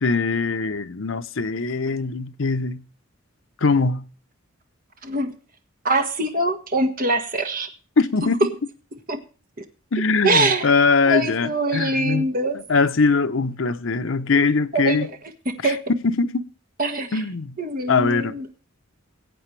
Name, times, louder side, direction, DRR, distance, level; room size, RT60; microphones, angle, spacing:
voice 1, 0.0-2.8 3.6-4.0 8.0-8.4 9.9-12.3 12.5-15.1 15.6-15.8 16.0-16.4 17.1-17.6 17.9-18.4, left 4 dB, 70° left, 0.8 m, -21 dB
voice 2, 5.0-5.3 5.8-7.7 9.1-9.2 9.6-9.7 10.2-10.6 11.1-12.6 14.7-15.1 15.4-15.8 16.8-17.2 17.6-18.4, right 2 dB, 45° right, 1.7 m, -23 dB
21.0 x 8.3 x 3.2 m
head